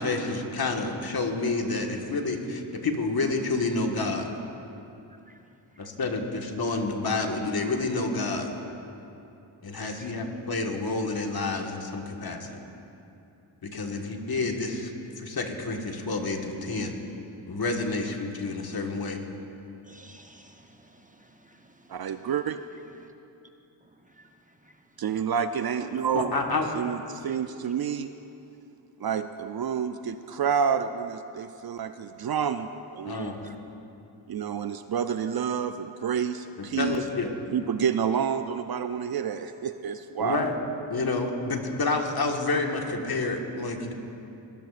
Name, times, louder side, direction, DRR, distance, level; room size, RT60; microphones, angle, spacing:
voice 1, 0.0-4.3 5.8-8.5 9.6-12.6 13.6-14.9 15.2-16.9 17.5-19.2 26.1-26.7 33.0-33.5 36.8-37.3 40.2-40.6 40.9-43.9, left 3 dB, 50° left, 2 dB, 1.7 m, -29 dB
voice 2, 19.8-22.3 23.0-23.1 23.8-24.8 27.3-27.4 33.1-33.3, right 1 dB, 15° right, 4 dB, 0.9 m, -56 dB
voice 3, 21.9-22.6 25.0-26.3 26.8-28.1 29.0-32.7 32.9-33.3 34.3-37.0 37.5-40.5, right 7 dB, 50° right, 10 dB, 0.5 m, -29 dB
21.0 x 14.0 x 2.5 m, 2.8 s
cardioid pair, 55°, 49 cm